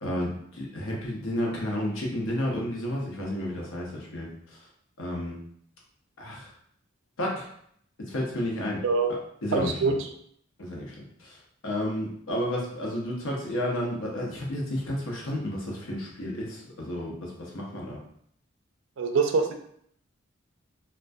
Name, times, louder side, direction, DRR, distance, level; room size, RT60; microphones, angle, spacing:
voice 1, 0.0-4.6 5.0-5.4 6.2-6.5 7.2-7.5 8.0-8.8 9.4-9.9 10.6-10.9 11.2-11.4 11.6-18.0, left 1 dB, 80° left, -2 dB, 0.7 m, -31 dB
voice 2, 8.8-9.1 9.5-10.0 19.0-19.5, right 4 dB, 70° right, 4 dB, 0.4 m, -24 dB
2.2 x 2.2 x 2.5 m, 0.67 s
head